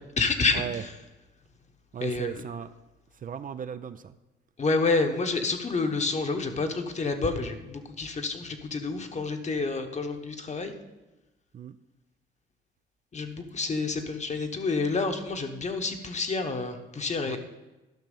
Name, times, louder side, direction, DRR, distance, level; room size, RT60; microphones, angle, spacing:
voice 1, 0.2-0.9 2.0-2.4 4.6-10.7 13.1-17.4, left 3 dB, 35° left, 6 dB, 1.2 m, -29 dB
voice 2, 1.9-2.7 3.1-4.1 11.5-11.8 17.3-17.4, right 8 dB, 45° right, 11 dB, 0.5 m, -36 dB
12.0 x 5.9 x 5.4 m, 1.1 s
cardioid pair, 90°, 20 cm